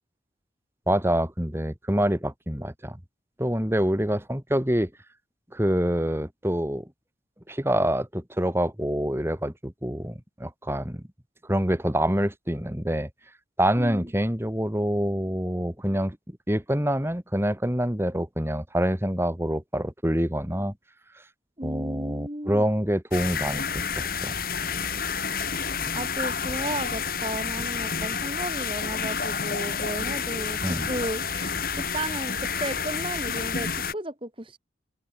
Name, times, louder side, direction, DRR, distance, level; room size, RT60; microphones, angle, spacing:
voice 1, 0.9-3.0 3.4-4.9 5.5-6.9 7.5-11.0 11.5-13.1 13.6-20.7 21.6-23.6 24.0-24.3 30.6-30.9, equal, 15° right, 2.2 m, -26 dB
voice 2, 21.6-22.6 25.9-34.6, right 1 dB, 30° right, 4.7 m, -34 dB
sound 1, 23.1-33.9, left 6 dB, 50° left, 2.7 m, -29 dB
open air
head